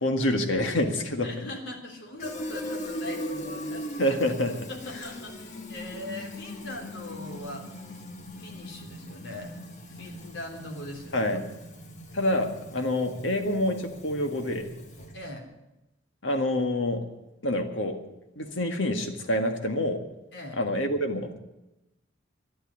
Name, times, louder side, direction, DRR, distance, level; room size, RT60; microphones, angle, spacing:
voice 1, 0.0-1.3 4.0-4.7 11.1-11.5 12.1-14.7 16.2-17.0 17.4-18.0 18.4-20.0 20.6-21.4, left 1 dB, 85° left, 5 dB, 1.8 m, -27 dB
voice 2, 1.2-4.1 4.7-7.7 8.4-9.6 9.9-11.3 15.1-15.5 20.3-20.6, left 1 dB, 70° left, 2 dB, 3.4 m, -41 dB
Fill (with liquid), 2.2-15.3, left 1 dB, 40° left, 1.7 m, -40 dB
11.5 x 11.5 x 9.7 m, 0.94 s
head